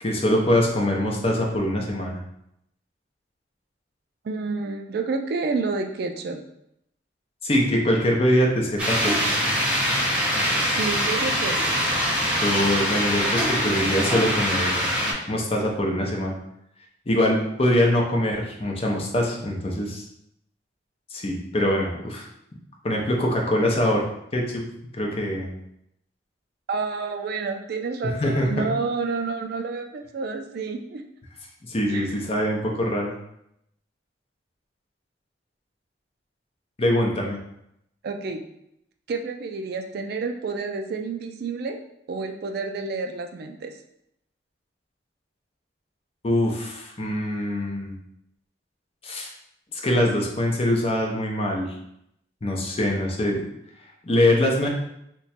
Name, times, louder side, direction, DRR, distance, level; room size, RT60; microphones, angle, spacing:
voice 1, 0.0-2.2 7.4-9.3 12.4-14.8 15.3-16.4 17.1-20.0 21.1-22.3 22.8-24.0 24.3-24.6 24.9-25.5 28.2-28.7 31.7-33.2 36.8-37.4 46.2-48.0 49.0-49.3 49.7-51.7 52.4-53.4 54.0-54.7, left 1 dB, 30° left, 0 dB, 0.6 m, -23 dB
voice 2, 4.2-6.4 10.7-11.8 26.7-31.0 31.9-32.1 38.0-38.4 39.1-41.8 42.1-43.7, right 4 dB, 55° right, 5 dB, 0.3 m, -29 dB
sound 1, 8.8-15.1, equal, 5° right, 0.7 m, -23 dB
2.9 x 2.2 x 4.2 m, 0.78 s
head